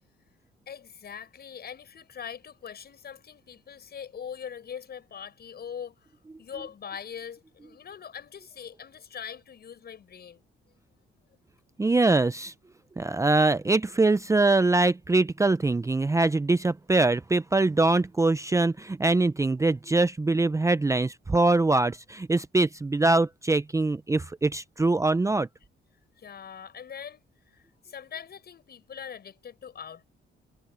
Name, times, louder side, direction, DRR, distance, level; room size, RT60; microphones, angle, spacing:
voice 1, 0.7-10.4 26.2-30.1, left 7 dB, 55° left, 7.2 m, -42 dB
voice 2, 11.8-12.5 13.0-25.5, right 2 dB, 15° right, 0.6 m, -23 dB
cardioid pair, 90°, 20 cm